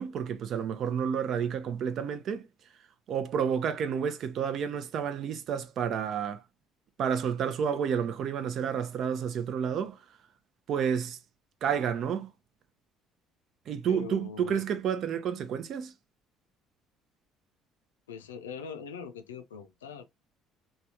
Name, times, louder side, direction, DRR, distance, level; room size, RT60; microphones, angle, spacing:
voice 1, 0.0-2.5 3.1-6.4 7.0-10.0 10.7-11.2 11.6-12.3 13.7-15.9, right 7 dB, 55° right, 0.6 m, -30 dB
voice 2, 13.9-14.6 18.1-20.1, left 6 dB, 85° left, 0.4 m, -42 dB
3.4 x 2.2 x 2.7 m
hypercardioid pair, 55°, 0 cm